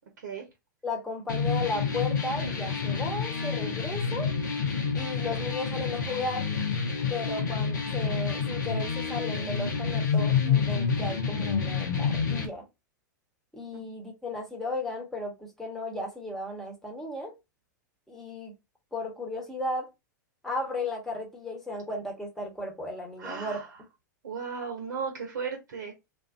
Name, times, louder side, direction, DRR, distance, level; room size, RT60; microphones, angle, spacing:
voice 1, 0.8-4.3 4.9-6.5 7.1-12.7 13.5-17.3 18.1-18.5 18.9-19.9 20.4-23.6, left 2 dB, 5° left, 1.2 m, -35 dB
sound 1, 1.3-12.4, left 5 dB, 75° left, 0.9 m, -28 dB
voice 2, 23.2-23.7 24.2-25.9, right 5 dB, 70° right, 0.9 m, -35 dB
2.6 x 2.5 x 2.5 m
hypercardioid pair, 100°, 10 cm